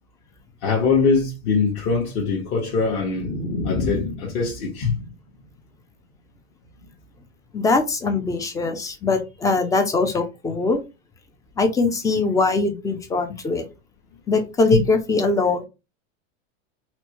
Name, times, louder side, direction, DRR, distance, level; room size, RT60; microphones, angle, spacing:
voice 1, 0.6-5.1 14.7-14.8, left 4 dB, 45° left, 1.1 m, -22 dB
voice 2, 7.5-10.8 11.6-13.7 14.3-15.7, left 3 dB, 10° left, 0.4 m, -21 dB
4.3 x 2.1 x 2.9 m
supercardioid pair, 135°, 35 cm